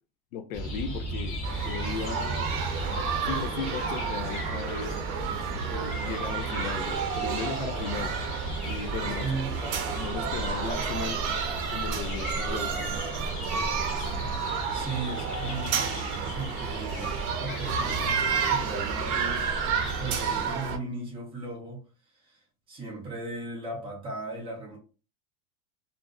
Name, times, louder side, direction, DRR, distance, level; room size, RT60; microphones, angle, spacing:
voice 1, 0.3-2.5 3.2-5.0 5.7-8.1 8.6-9.3 9.6-11.2 11.6-12.9, left 6 dB, 60° left, 0.5 m, -36 dB
sound 1, 0.5-20.4, right 1 dB, 25° left, 0.7 m, -36 dB
sound 2, 1.4-20.8, right 6 dB, 60° right, 0.7 m, -31 dB
voice 2, 9.0-9.6 14.7-19.5 19.8-21.9 22.1-24.8, right 3 dB, 10° right, 0.4 m, -37 dB
2.5 x 2.0 x 3.4 m
supercardioid pair, 160°, 48 cm